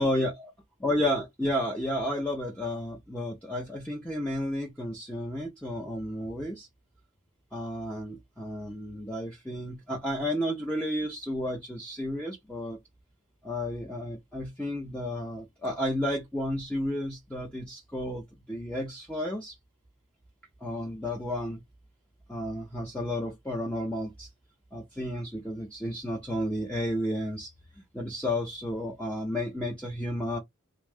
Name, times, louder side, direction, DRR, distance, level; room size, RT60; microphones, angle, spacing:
voice 1, 0.0-0.5 0.8-6.7 7.5-12.8 13.4-19.6 20.6-21.6 22.3-24.3 24.7-27.5 27.9-30.4, left 1 dB, 5° left, 0.8 m, -32 dB
3.6 x 2.5 x 3.4 m
head